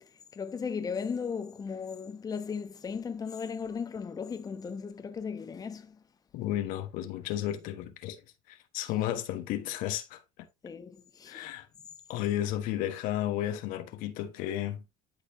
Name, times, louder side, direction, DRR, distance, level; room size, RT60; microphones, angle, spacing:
voice 1, 0.3-6.0 10.6-11.5, left 6 dB, 25° left, 0.9 m, -36 dB
voice 2, 6.3-8.2 8.5-10.2 11.3-11.7 12.1-14.8, left 12 dB, 70° left, 1.3 m, -33 dB
11.5 x 4.2 x 2.8 m
supercardioid pair, 100°, 14 cm